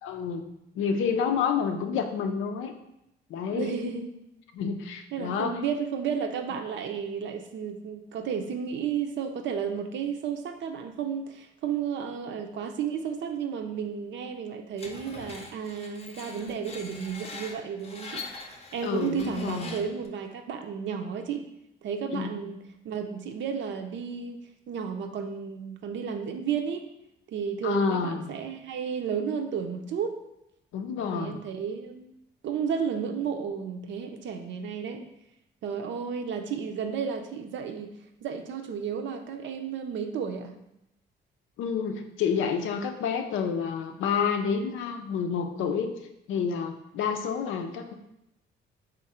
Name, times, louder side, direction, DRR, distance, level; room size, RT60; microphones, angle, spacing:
voice 1, 0.0-0.5 0.8-2.7 3.3-3.7 4.5-5.6 18.8-19.8 22.1-22.3 27.6-28.3 30.7-31.4 41.6-46.0 46.3-47.9, left 6 dB, 80° left, 6 dB, 0.5 m, -29 dB
voice 2, 3.5-4.1 5.1-21.4 21.8-26.9 27.3-30.1 31.1-32.1 32.4-35.1 35.6-40.6, right 7 dB, 70° right, 6 dB, 0.5 m, -33 dB
Screech, 14.8-20.1, left 3 dB, 30° left, 0.6 m, -43 dB
3.7 x 2.6 x 4.2 m, 0.84 s
cardioid pair, 90°, 20 cm